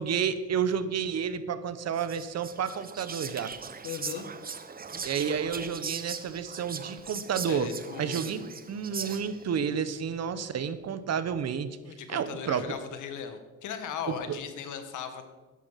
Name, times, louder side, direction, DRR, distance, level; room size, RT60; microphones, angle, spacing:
voice 1, 0.0-3.5 5.0-7.7 8.0-11.7 12.1-12.7 14.1-14.4, right 7 dB, 55° right, 13 dB, 1.1 m, -30 dB
Whispering, 1.9-9.5, right 5 dB, 30° right, 1.0 m, -40 dB
voice 2, 3.8-4.3 7.5-8.3 11.8-15.2, left 7 dB, 80° left, 8 dB, 1.7 m, -38 dB
12.0 x 11.0 x 5.8 m, 1.2 s
cardioid pair, 90°, 30 cm